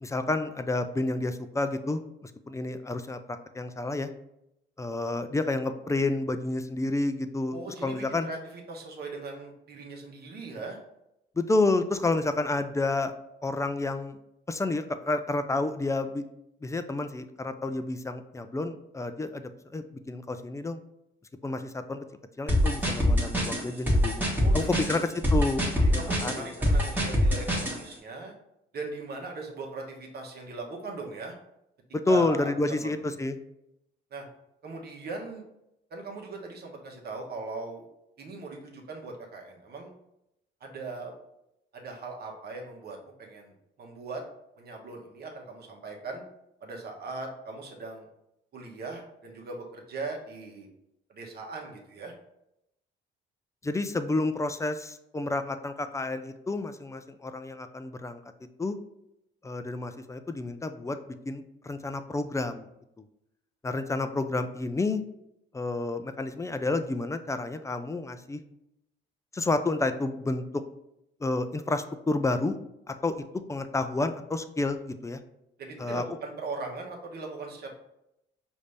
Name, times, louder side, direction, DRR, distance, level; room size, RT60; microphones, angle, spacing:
voice 1, 0.0-3.2 3.5-4.1 4.8-7.6 7.8-8.3 11.4-13.1 13.4-14.2 14.5-16.2 16.6-19.4 19.7-20.8 21.4-22.0 22.4-24.3 24.5-25.6 25.9-26.5 31.9-33.4 53.6-58.2 58.6-58.8 59.4-61.0 61.3-62.7 63.6-65.0 65.5-68.4 69.3-70.4 71.2-72.6 72.9-73.1 73.5-75.2 75.8-76.0, left 2 dB, 15° left, 9 dB, 0.3 m, -30 dB
voice 2, 7.5-10.8 24.4-25.0 25.9-28.3 28.7-31.3 32.1-33.1 34.1-34.3 34.6-35.4 35.9-37.9 38.2-39.9 40.6-41.1 41.7-44.2 44.6-46.2 46.6-48.1 48.5-50.7 51.1-52.1 75.6-77.7, right 3 dB, 55° right, 1 dB, 1.0 m, -39 dB
sound 1, 22.5-27.8, equal, 10° right, 1.3 m, -24 dB
5.0 x 2.7 x 3.3 m, 0.83 s
cardioid pair, 90°, 20 cm